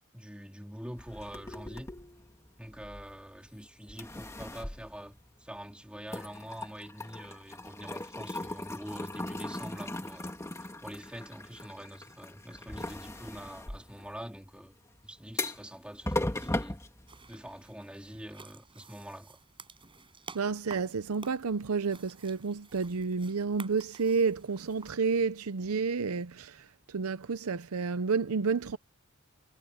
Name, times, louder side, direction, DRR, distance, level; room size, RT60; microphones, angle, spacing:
voice 1, 0.1-1.9 2.6-10.3 10.8-14.7 15.0-16.8 17.3-19.4, equal, 5° right, 3.1 m, -45 dB
sound 1, 1.0-3.5 3.9-5.7 6.0-17.7, left 1 dB, 15° left, 1.8 m, -38 dB
sound 2, 17.1-24.9, right 4 dB, 25° right, 6.6 m, -52 dB
voice 2, 20.3-28.8, right 5 dB, 80° right, 0.7 m, -30 dB
head